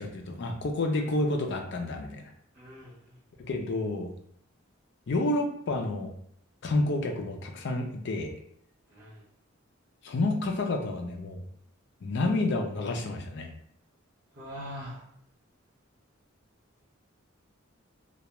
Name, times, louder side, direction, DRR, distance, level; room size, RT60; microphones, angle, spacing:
voice 1, 0.0-2.3 3.4-4.1 5.1-6.1 6.6-8.3 10.0-11.5 12.0-13.5, left 2 dB, 60° left, 4 dB, 0.5 m, -29 dB
voice 2, 2.5-3.1 8.9-9.2 14.4-15.0, equal, 40° right, -9 dB, 0.6 m, -42 dB
2.3 x 2.2 x 2.8 m, 0.67 s
head